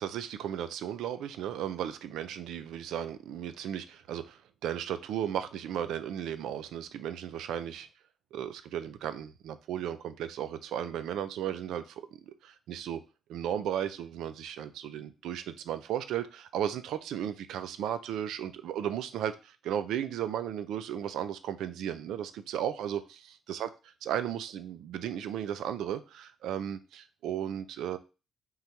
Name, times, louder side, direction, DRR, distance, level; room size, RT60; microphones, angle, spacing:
voice 1, 0.0-7.9 8.3-13.0 13.3-23.0 23.5-23.7 24.0-28.0, right 10 dB, 80° right, 0.5 m, -35 dB
3.8 x 2.8 x 4.4 m
cardioid pair, 90°, 0 cm